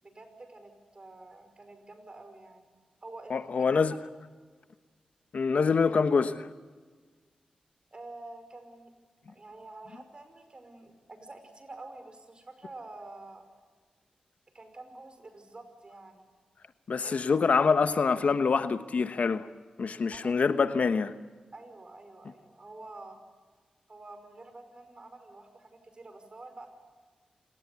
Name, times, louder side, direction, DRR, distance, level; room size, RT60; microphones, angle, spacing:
voice 1, 0.0-2.7 3.0-3.9 5.5-5.6 7.9-8.9 9.3-13.5 14.5-16.2 17.0-17.2 17.6-17.7 20.1-20.3 21.5-23.2 23.9-26.7, right 2 dB, 40° right, 5.4 m, -48 dB
voice 2, 3.3-3.9 5.3-6.5 16.9-19.5 19.8-21.1, left 5 dB, 65° left, 1.1 m, -25 dB
27.0 x 19.0 x 8.3 m
cardioid pair, 60°, 3 cm